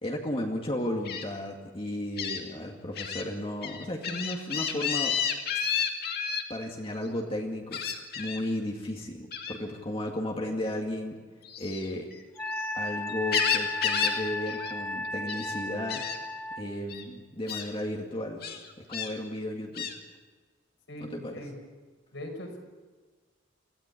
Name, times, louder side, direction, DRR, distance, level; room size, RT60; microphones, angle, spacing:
voice 1, 0.0-5.2 6.5-7.8 8.2-11.2 11.6-12.1 12.8-16.0 16.6-18.4 18.9-19.9 21.0-21.4, left 1 dB, 30° left, 0 dB, 2.1 m, -34 dB
Gull seagull, 1.1-1.2 2.2-2.4 3.0-3.2 3.6-6.4 7.7-8.4 9.3-9.6 11.4-12.7 13.1-14.2 14.5-14.7 15.0-15.5 15.9-16.2 16.9-17.0 17.5-17.7 18.4-19.1 19.8-20.0, left 7 dB, 55° left, 2.5 m, -31 dB
Wind instrument woodwind instrument, 12.4-16.6, left 2 dB, 10° left, 1.0 m, -35 dB
voice 2, 20.9-21.6 22.1-22.6, left 1 dB, 70° left, 2 dB, 5.4 m, -40 dB
25.0 x 16.5 x 8.4 m, 1.4 s
head